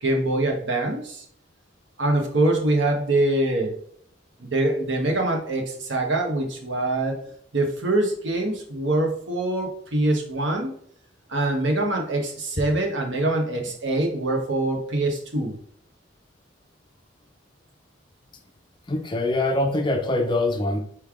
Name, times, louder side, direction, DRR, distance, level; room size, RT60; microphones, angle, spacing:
voice 1, 0.0-1.3 2.0-3.8 4.4-7.2 7.5-10.7 11.3-15.6, right 2 dB, 65° right, 2 dB, 1.0 m, -24 dB
voice 2, 18.9-20.8, left 2 dB, 25° left, 5 dB, 0.5 m, -23 dB
4.6 x 3.3 x 3.5 m, 0.62 s
head